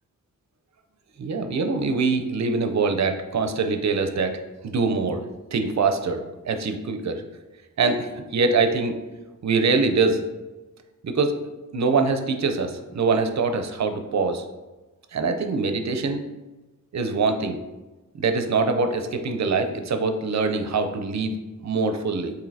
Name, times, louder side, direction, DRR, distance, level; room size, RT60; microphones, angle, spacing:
voice 1, 1.2-4.4 4.6-5.2 5.5-7.2 7.8-9.0 9.4-10.2 11.0-11.4 11.7-14.4 15.1-16.2 16.9-17.6 18.2-21.3 21.6-22.3, right 4 dB, 55° right, 7 dB, 0.6 m, -23 dB
7.0 x 2.7 x 2.7 m, 1.1 s
cardioid pair, 80°, 33 cm